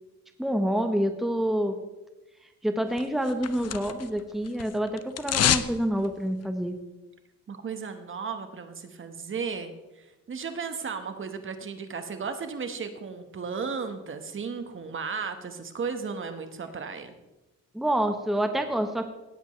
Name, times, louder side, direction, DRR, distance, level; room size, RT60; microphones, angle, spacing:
voice 1, 0.4-1.8 2.6-6.8 17.7-19.1, right 1 dB, ahead, 6 dB, 1.0 m, -27 dB
sound 1, 3.0-4.2 4.5-5.7 6.0-6.1, left 10 dB, 55° left, 0.7 m, -27 dB
voice 2, 7.5-17.1, right 5 dB, 40° right, 8 dB, 1.4 m, -35 dB
17.5 x 8.2 x 3.2 m, 1.0 s
cardioid pair, 90°, 30 cm